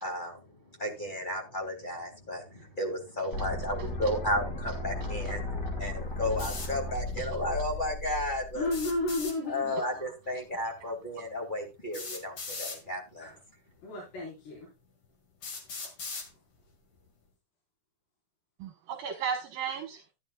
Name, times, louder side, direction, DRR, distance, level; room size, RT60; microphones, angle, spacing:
voice 1, 0.0-0.4 0.8-5.4 5.8-8.7 9.4-13.3, left 1 dB, 15° left, 2 dB, 1.7 m, -33 dB
sound 1, 3.3-9.3, left 2 dB, 60° left, 1.0 m, -36 dB
sound 2, 6.4-6.7 8.6-9.4 10.8-10.9 11.9-12.8 13.8-13.9 14.6-14.7 15.4-16.3, left 4 dB, 40° left, 2.1 m, -39 dB
voice 2, 8.5-9.7 13.2-13.3 13.8-14.7, left 2 dB, 80° left, -5 dB, 6.4 m, -32 dB
voice 3, 9.7-10.1 10.5-10.6 18.6-20.0, right 7 dB, 70° right, 5 dB, 2.7 m, -36 dB
14.5 x 10.5 x 2.3 m, 0.24 s
omnidirectional pair, 4.7 m